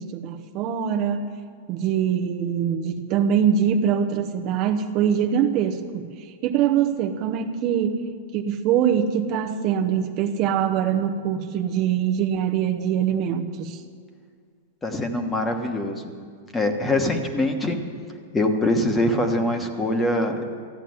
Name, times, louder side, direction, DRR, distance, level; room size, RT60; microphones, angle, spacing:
voice 1, 0.0-1.3 1.7-6.1 6.4-8.1 8.3-13.8, right 8 dB, 40° right, 5 dB, 0.8 m, -23 dB
voice 2, 14.8-16.1 16.5-17.8 18.3-20.6, left 1 dB, 15° left, 5 dB, 1.2 m, -23 dB
14.0 x 8.2 x 9.5 m, 2.1 s
hypercardioid pair, 140°, 0 cm